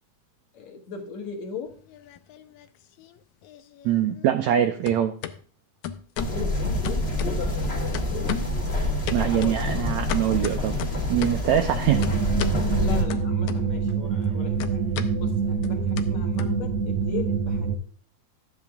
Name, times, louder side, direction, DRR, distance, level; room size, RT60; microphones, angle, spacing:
voice 1, 0.5-1.8 6.3-8.4 9.3-9.9 12.0-12.2 12.8-14.8 15.1-17.8, left 4 dB, 60° left, 4 dB, 2.3 m, -38 dB
sound 1, 1.7-2.7 3.0-4.6 4.8-5.4 5.8-6.4 6.8-7.6 7.9-8.6 9.1-11.5 12.0-12.6 13.1-13.9 14.2-17.1, left 10 dB, 75° left, 1.7 m, -35 dB
voice 2, 3.8-5.1 9.1-10.8 11.1-12.0 12.6-12.8, right 10 dB, 90° right, 7 dB, 1.6 m, -23 dB
sound 2, 6.2-13.0, left 1 dB, 30° left, 1.3 m, -27 dB
sound 3, 11.9-17.8, right 5 dB, 60° right, 1.7 m, -25 dB
12.5 x 8.9 x 3.5 m, 0.43 s
omnidirectional pair, 4.0 m